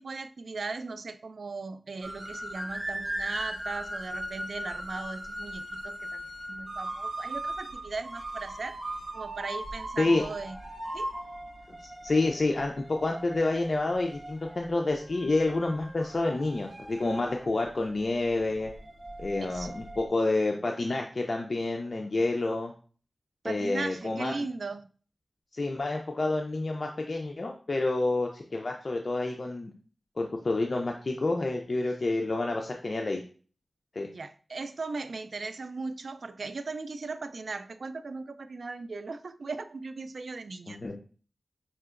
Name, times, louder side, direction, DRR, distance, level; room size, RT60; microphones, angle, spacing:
voice 1, 0.0-6.2 6.5-8.8 9.1-10.6 10.9-11.1 19.4-19.8 23.4-24.9 34.1-40.8, right 3 dB, 70° right, 12 dB, 0.3 m, -38 dB
sound 1, 2.0-20.1, right 1 dB, 50° right, 1.2 m, -39 dB
voice 2, 12.0-18.7 19.2-22.7 23.4-24.3 25.5-29.7 30.2-33.2 33.9-34.1 40.7-41.0, left 2 dB, 60° left, 2 dB, 0.4 m, -28 dB
5.5 x 2.9 x 2.4 m, 0.40 s
cardioid pair, 45°, 0 cm